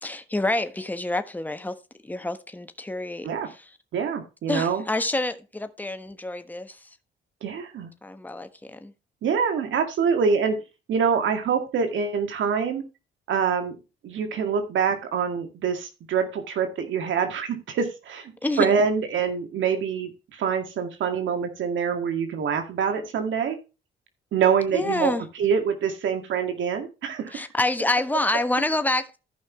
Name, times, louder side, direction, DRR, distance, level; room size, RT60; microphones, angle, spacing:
voice 1, 0.0-3.6 4.5-6.9 8.0-8.9 18.4-18.7 24.7-25.2 27.3-29.2, left 2 dB, 10° left, 1.2 m, -27 dB
voice 2, 3.9-4.8 7.4-7.9 9.2-10.6 10.9-12.8 13.3-13.8 14.0-18.3 18.6-23.6 24.3-25.1 25.4-27.4, right 6 dB, 75° right, 2.1 m, -25 dB
14.5 x 5.6 x 3.1 m
cardioid pair, 90°, 20 cm